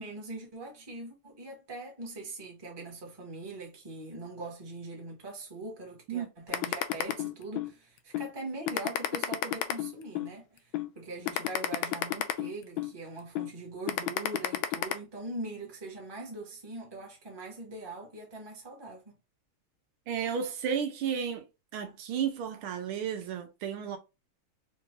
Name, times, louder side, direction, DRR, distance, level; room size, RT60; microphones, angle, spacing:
voice 1, 0.0-19.2, right 2 dB, 15° right, 1.0 m, -42 dB
sound 1, 6.5-7.7 8.1-8.3 8.7-10.3 10.7-10.9 11.3-12.9 13.4-13.5 13.9-14.9, left 13 dB, 75° left, 1.3 m, -30 dB
voice 2, 20.1-21.4 21.7-24.0, right 8 dB, 75° right, 1.5 m, -33 dB
4.5 x 2.7 x 3.0 m
omnidirectional pair, 2.4 m